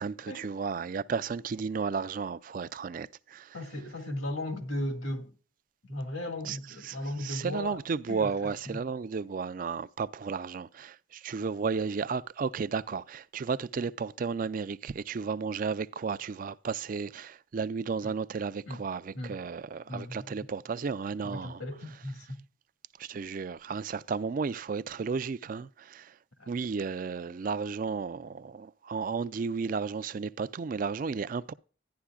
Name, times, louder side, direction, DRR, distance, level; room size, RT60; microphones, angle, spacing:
voice 1, 0.0-3.5 6.4-6.6 6.8-7.0 7.2-21.6 23.0-26.1 26.5-31.5, right 5 dB, 45° right, 0.3 m, -33 dB
voice 2, 3.5-5.3 5.9-7.8 8.1-8.8 18.0-18.1 18.7-18.8 19.1-19.4 19.9-20.3 21.2-22.4 26.4-26.5, left 1 dB, 85° left, 1.9 m, -36 dB
11.5 x 10.5 x 2.3 m
head